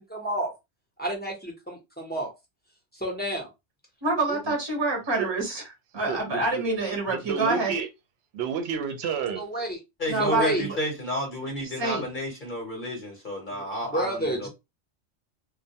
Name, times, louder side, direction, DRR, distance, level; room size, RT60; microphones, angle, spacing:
voice 1, 0.1-0.5 1.0-2.3 2.9-3.5 4.3-4.4 9.4-9.8 10.2-10.6 13.5-13.6 13.9-14.5, right 1 dB, 10° left, 0.6 m, -30 dB
voice 2, 4.0-5.6 5.9-7.7 10.1-10.8 11.8-12.0, right 2 dB, 25° right, 0.7 m, -27 dB
voice 3, 5.9-6.6 7.1-7.9 8.3-9.4, right 7 dB, 70° right, 0.8 m, -30 dB
voice 4, 10.0-14.5, equal, 50° left, 0.8 m, -31 dB
2.2 x 2.2 x 2.7 m
omnidirectional pair, 1.2 m